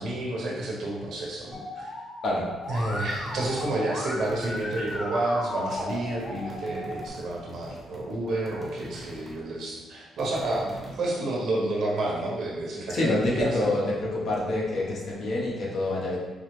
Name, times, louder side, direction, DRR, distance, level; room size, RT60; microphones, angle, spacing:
voice 1, 0.0-1.9 2.7-13.7, right 2 dB, 70° right, -3 dB, 0.9 m, -30 dB
Musical instrument, 1.5-7.1, left 2 dB, 35° left, 0.7 m, -36 dB
sound 1, 2.6-3.8 4.2-5.0 5.7-9.4 10.2-11.0, right 1 dB, 15° right, 0.7 m, -45 dB
voice 2, 12.9-16.2, left 2 dB, 65° left, -3 dB, 0.9 m, -27 dB
4.8 x 2.0 x 3.1 m, 1.3 s
cardioid pair, 90°, 0 cm